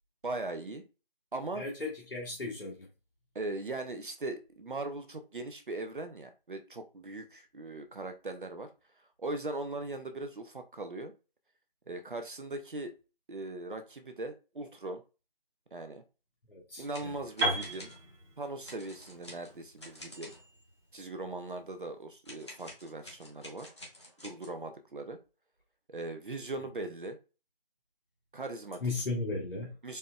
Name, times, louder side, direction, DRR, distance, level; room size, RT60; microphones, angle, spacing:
voice 1, 0.2-0.8 1.3-1.6 3.3-8.7 9.2-11.1 11.9-12.9 13.3-15.0 15.7-16.0 16.8-17.9 18.4-20.3 20.9-23.7 24.2-25.2 25.9-27.2 28.3-28.8 29.8-30.0, right 2 dB, 60° right, 0.6 m, -39 dB
voice 2, 1.6-2.9 16.5-17.2 28.8-29.7, left 3 dB, 70° left, 1.1 m, -36 dB
sound 1, 16.8-18.0 18.6-20.6 22.2-24.6, left 1 dB, 30° left, 0.9 m, -50 dB
Piano, 17.4-21.3, right 2 dB, 20° right, 1.6 m, -36 dB
4.2 x 3.3 x 2.2 m
figure-of-eight pair, 160°, 30 cm